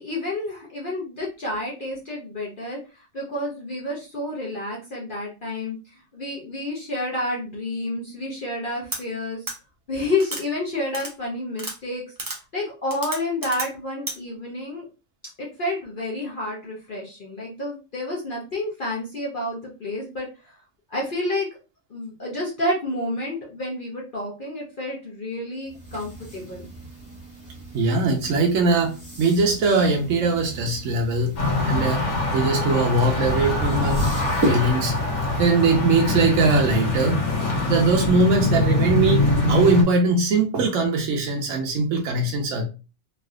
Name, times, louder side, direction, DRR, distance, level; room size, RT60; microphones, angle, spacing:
voice 1, 0.0-9.4 9.9-12.0 12.5-14.9 15.4-20.5 20.9-21.6 21.9-26.7, left 1 dB, 45° left, -4 dB, 0.8 m, -30 dB
sound 1, 8.9-9.0 9.5-9.6 10.2-10.4 10.9-11.1 11.6-11.7 12.2-12.4 12.9-13.7 14.1-14.2, right 2 dB, 35° right, 0.3 m, -31 dB
sound 2, 25.6-35.5, right 1 dB, 10° left, 1.5 m, -34 dB
voice 2, 27.7-31.4 31.7-34.0 34.4-35.0 35.4-37.2 37.7-42.7, right 3 dB, 70° right, 1 dB, 0.9 m, -21 dB
sound 3, 31.4-39.8, left 2 dB, 90° left, 1.4 m, -23 dB
3.1 x 2.6 x 2.4 m, 0.32 s
omnidirectional pair, 1.4 m